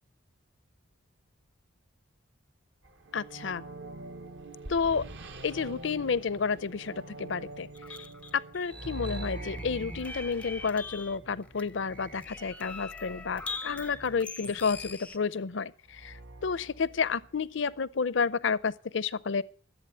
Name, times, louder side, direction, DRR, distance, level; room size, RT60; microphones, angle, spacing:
sound 1, 2.9-12.8 15.9-17.7, right 2 dB, 55° right, 1.2 m, -44 dB
voice 1, 3.1-3.6 4.7-5.0 5.4-8.0 8.3-19.4, left 5 dB, 60° left, 0.6 m, -31 dB
sound 2, 7.7-15.2, left 3 dB, 5° left, 0.6 m, -42 dB
14.5 x 8.2 x 8.5 m
head